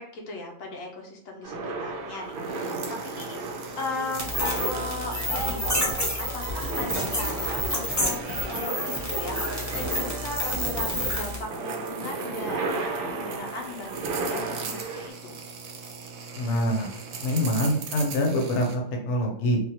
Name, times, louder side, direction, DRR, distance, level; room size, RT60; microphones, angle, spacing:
voice 1, 0.0-8.2 8.5-15.4, left 2 dB, 90° left, 1 dB, 1.1 m, -37 dB
sound 1, 1.4-15.1, right 3 dB, 55° right, 0.7 m, -34 dB
sound 2, 2.3-18.7, right 5 dB, 75° right, 0.9 m, -41 dB
sound 3, 4.2-11.4, left 1 dB, 15° left, 0.6 m, -29 dB
voice 2, 16.4-16.9 17.2-19.6, equal, 65° left, 1 dB, 1.0 m, -25 dB
3.4 x 2.4 x 2.9 m, 0.66 s
omnidirectional pair, 1.4 m